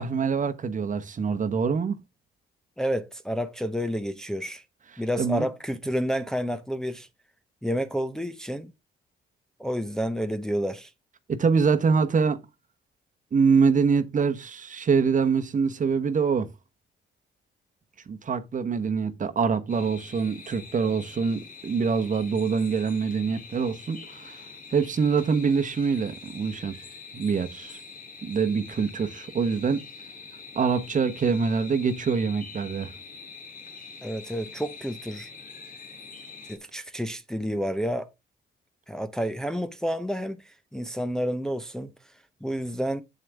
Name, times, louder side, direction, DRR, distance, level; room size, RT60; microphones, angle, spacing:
voice 1, 0.0-2.0 5.2-5.5 11.3-12.4 13.3-16.5 18.1-24.4 24.7-26.7 27.1-27.8 28.2-29.9 30.5-32.9, right 5 dB, 40° right, 1.1 m, -25 dB
voice 2, 2.8-4.6 5.0-7.1 7.6-8.7 9.6-10.9 34.0-35.3 36.5-38.0 38.9-41.9 42.4-43.0, equal, 5° left, 0.7 m, -30 dB
sound 1, 19.7-36.6, left 4 dB, 45° left, 2.1 m, -45 dB
7.8 x 7.7 x 3.4 m
cardioid pair, 90°, 20 cm